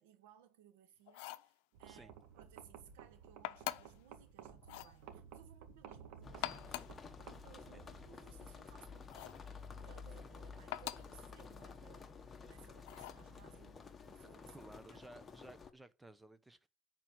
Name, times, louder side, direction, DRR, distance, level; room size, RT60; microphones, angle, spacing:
voice 1, 0.0-6.9 7.2-15.0, right 9 dB, 90° right, 1.6 m, -63 dB
sound 1, 1.1-1.5 3.4-4.0 4.6-5.0 6.3-7.0 9.1-9.5 10.7-11.2 12.9-13.3, left 16 dB, 80° left, 0.6 m, -44 dB
sound 2, 1.7-8.1, right 8 dB, 75° right, 1.8 m, -56 dB
sound 3, 6.2-15.7, left 5 dB, 25° left, 1.4 m, -52 dB
voice 2, 14.5-16.7, right 1 dB, 10° right, 1.0 m, -56 dB
11.0 x 4.6 x 7.9 m
supercardioid pair, 95°, 0 cm